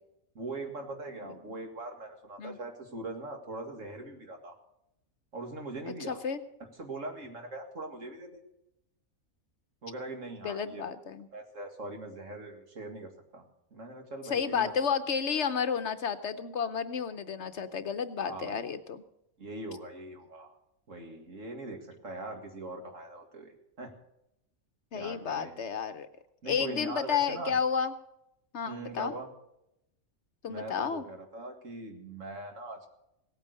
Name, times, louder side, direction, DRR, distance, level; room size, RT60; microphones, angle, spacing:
voice 1, 0.3-4.5 5.3-6.2 6.8-8.4 9.8-10.8 11.3-13.4 13.7-14.7 18.2-18.7 19.4-20.6 20.9-24.0 24.9-25.6 26.4-27.6 28.7-29.3 30.5-32.9, right 2 dB, 65° right, 4 dB, 2.4 m, -41 dB
voice 2, 6.1-6.4 10.4-11.3 14.3-19.0 24.9-26.1 26.5-27.9 28.5-29.1 30.4-31.1, left 6 dB, 60° left, 11 dB, 1.0 m, -31 dB
17.5 x 8.9 x 6.4 m, 0.84 s
omnidirectional pair, 1.5 m